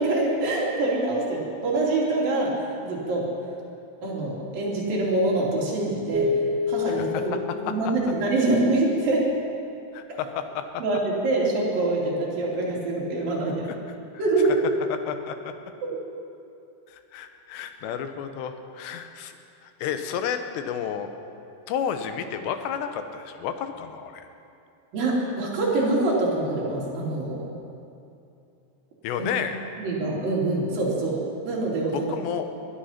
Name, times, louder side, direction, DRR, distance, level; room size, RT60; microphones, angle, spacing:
voice 1, 0.0-2.5 2.8-3.3 4.0-6.3 6.7-7.3 7.6-9.3 10.1-10.2 10.8-13.7 14.2-14.6 15.8-16.0 24.9-27.4 29.2-29.3 29.8-32.1, right 2 dB, 60° right, -4 dB, 4.5 m, -25 dB
sound 1, 6.1-8.7, left 4 dB, 5° right, 0.6 m, -28 dB
voice 2, 6.9-7.2 7.7-7.8 9.9-10.8 13.9-14.0 15.1-15.5 16.9-19.4 19.6-21.1 21.7-24.3 29.0-29.6 31.9-32.5, left 8 dB, 90° left, 8 dB, 3.2 m, -31 dB
20.5 x 12.0 x 5.8 m, 2.7 s
omnidirectional pair, 4.8 m